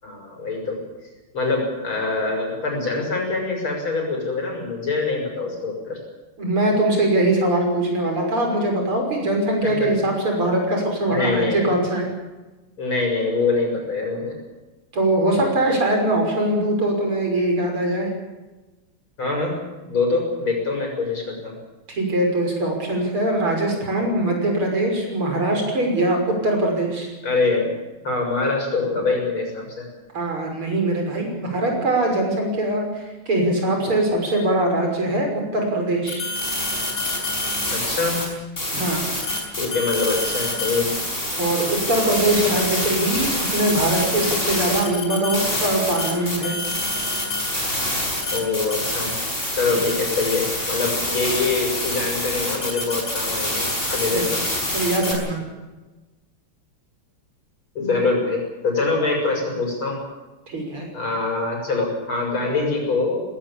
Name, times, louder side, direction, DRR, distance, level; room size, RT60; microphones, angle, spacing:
voice 1, 0.0-0.8 1.3-6.0 9.6-10.1 11.1-11.7 12.8-14.4 19.2-19.6 19.8-21.5 27.2-27.7 28.0-29.9 37.7-38.3 39.6-40.9 48.3-49.1 49.5-54.4 57.8-60.0 60.9-63.2, left 3 dB, 75° left, 1 dB, 7.8 m, -24 dB
voice 2, 6.4-12.1 14.9-18.1 21.9-27.1 30.1-36.2 38.7-39.0 41.3-46.6 49.7-49.8 54.1-54.5 54.7-55.4 60.5-60.9, right 1 dB, 85° right, 2 dB, 6.9 m, -22 dB
sound 1, 36.1-38.2 38.6-55.1, left 1 dB, 25° left, 5.6 m, -26 dB
19.5 x 18.0 x 8.8 m, 1.1 s
omnidirectional pair, 2.3 m